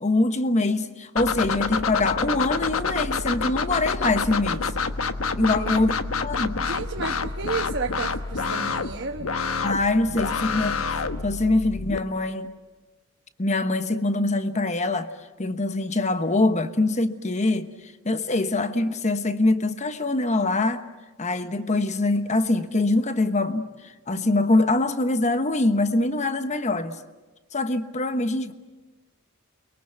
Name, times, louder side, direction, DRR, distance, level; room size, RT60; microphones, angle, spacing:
voice 1, 0.0-4.7 5.4-6.6 9.6-10.8 11.2-12.5 13.4-15.1 15.4-17.7 18.0-20.9 21.2-23.7 24.1-27.0 27.5-28.5, left 2 dB, 35° left, 1.2 m, -24 dB
sound 1, 1.2-12.0, left 4 dB, 85° left, 1.2 m, -28 dB
voice 2, 5.4-5.8 6.6-9.3, right 4 dB, 55° right, 1.2 m, -32 dB
29.0 x 22.5 x 7.9 m
head